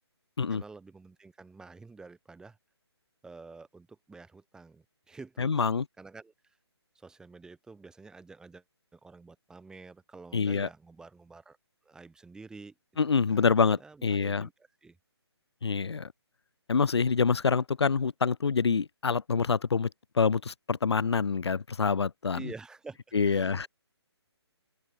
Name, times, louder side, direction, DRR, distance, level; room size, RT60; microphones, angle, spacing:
voice 1, 0.5-2.6 3.2-5.6 6.0-6.6 7.0-8.6 8.9-11.6 11.8-12.7 13.1-15.0 15.7-16.0 22.3-23.7, right 4 dB, 5° right, 3.8 m, -49 dB
voice 2, 5.4-5.8 10.3-10.7 13.0-14.5 15.6-16.1 16.7-19.9 20.2-22.4 23.1-23.7, left 5 dB, 70° left, 1.4 m, -26 dB
open air
figure-of-eight pair, 150°, 14 cm